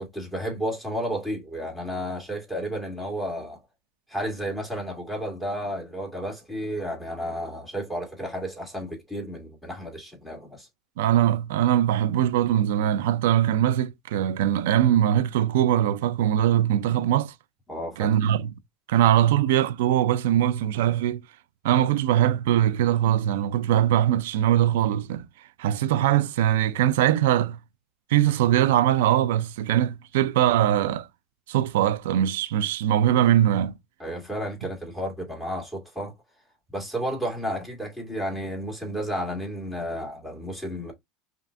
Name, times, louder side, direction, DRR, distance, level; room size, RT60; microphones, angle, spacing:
voice 1, 0.0-3.6 4.1-10.7 17.7-18.1 34.0-36.1 36.7-40.9, equal, ahead, 1.9 m, -32 dB
voice 2, 11.0-17.3 18.0-18.5 18.9-21.2 21.6-25.3 25.6-27.6 28.1-31.1 31.5-33.7, right 11 dB, 90° right, 0.5 m, -21 dB
5.8 x 2.5 x 2.6 m
supercardioid pair, 135°, 0 cm